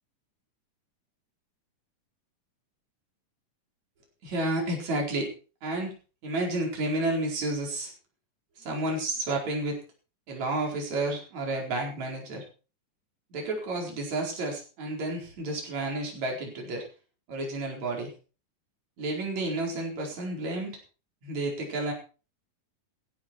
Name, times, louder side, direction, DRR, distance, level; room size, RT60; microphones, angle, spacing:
voice 1, 4.2-5.3 5.6-5.9 6.2-7.9 8.6-9.8 10.3-12.4 13.3-16.9 17.3-18.1 19.0-20.8 21.2-21.9, right 2 dB, 60° right, 0 dB, 5.8 m, -31 dB
16.0 x 11.5 x 4.5 m, 0.35 s
omnidirectional pair, 3.7 m